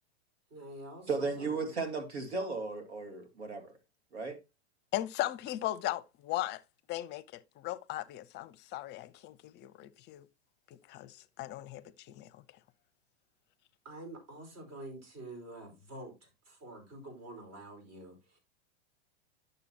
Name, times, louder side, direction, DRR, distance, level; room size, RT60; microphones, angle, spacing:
voice 1, 0.5-1.5 13.8-18.4, right 1 dB, 45° right, 4.9 m, -47 dB
voice 2, 1.1-3.7 4.1-4.4, right 4 dB, 85° right, 2.3 m, -35 dB
voice 3, 4.9-6.6 6.9-10.3 10.7-12.4, left 15 dB, 30° left, 0.6 m, -38 dB
11.0 x 6.7 x 2.9 m
hypercardioid pair, 110°, 32 cm